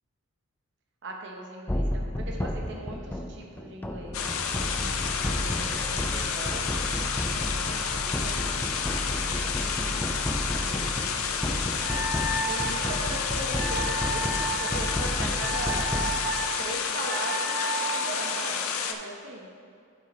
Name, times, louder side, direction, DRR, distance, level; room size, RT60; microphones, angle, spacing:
voice 1, 1.0-4.4 5.0-10.0 10.5-11.7 12.4-15.9 16.6-19.5, right 1 dB, 55° right, 1 dB, 0.9 m, -40 dB
sound 1, 1.7-17.0, left 1 dB, 10° left, 0.3 m, -32 dB
sound 2, 4.1-18.9, left 6 dB, 70° left, 0.6 m, -30 dB
Wind instrument woodwind instrument, 11.8-18.1, right 2 dB, 25° right, 1.8 m, -33 dB
12.0 x 5.6 x 3.1 m, 2.3 s
head